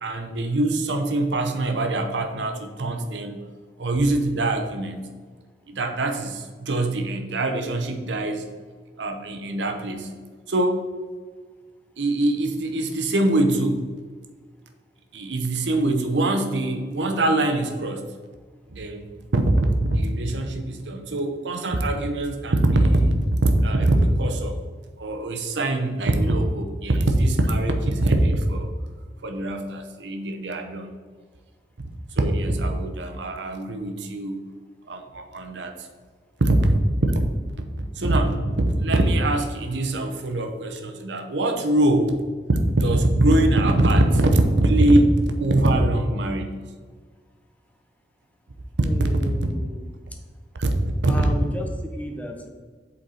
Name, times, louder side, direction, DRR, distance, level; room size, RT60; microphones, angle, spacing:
voice 1, 0.0-3.4 3.8-5.0 5.7-8.4 9.0-10.1 10.5-10.9 12.0-13.9 15.1-18.1 18.7-24.6 25.0-28.7 29.2-30.9 32.2-34.4 34.9-35.7 36.4-36.8 37.8-42.2 42.5-46.5 49.0-49.1 50.5-50.7 51.0-51.3, right 1 dB, 80° right, 5 dB, 0.8 m, -22 dB
voice 2, 48.8-50.2 51.1-52.5, left 1 dB, 10° left, 3 dB, 0.7 m, -33 dB
7.8 x 4.2 x 4.3 m, 1.5 s
head